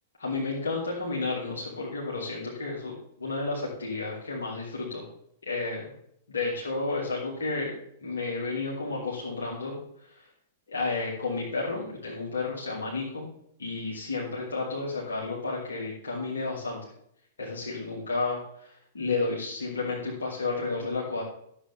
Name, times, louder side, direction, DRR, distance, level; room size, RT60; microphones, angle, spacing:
voice 1, 0.2-5.1 5.4-5.8 6.3-7.7 8.0-9.8 10.1-10.2 10.7-13.3 13.6-16.8 17.4-21.2, left 3 dB, 70° left, -5 dB, 2.6 m, -32 dB
13.0 x 7.5 x 3.6 m, 0.70 s
figure-of-eight pair, 100°, 0 cm